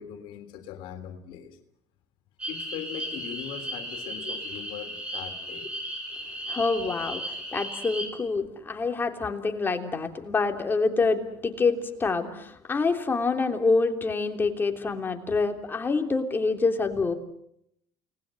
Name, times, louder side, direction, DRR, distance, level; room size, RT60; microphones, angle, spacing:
voice 1, 0.0-1.6 2.5-5.7, left 9 dB, 65° left, 7 dB, 3.3 m, -40 dB
sound 1, 2.4-8.1, equal, 10° right, 6.5 m, -35 dB
voice 2, 6.5-17.1, left 4 dB, 25° left, 5 dB, 3.2 m, -26 dB
29.5 x 20.0 x 7.7 m, 0.73 s
supercardioid pair, 100°, 9 cm